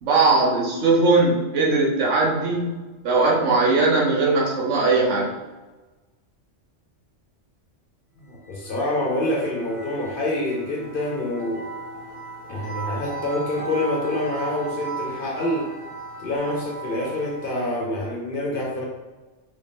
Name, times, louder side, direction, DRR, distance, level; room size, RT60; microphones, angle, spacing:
voice 1, 0.0-2.7 3.0-5.3, right 3 dB, 75° right, -3 dB, 1.2 m, -19 dB
voice 2, 8.2-11.7 12.5-15.7 16.2-18.8, left 1 dB, 55° left, -2 dB, 0.7 m, -26 dB
sound 1, 8.3-17.8, right 3 dB, 15° left, 1.0 m, -36 dB
3.2 x 2.6 x 3.3 m, 1.2 s
omnidirectional pair, 1.2 m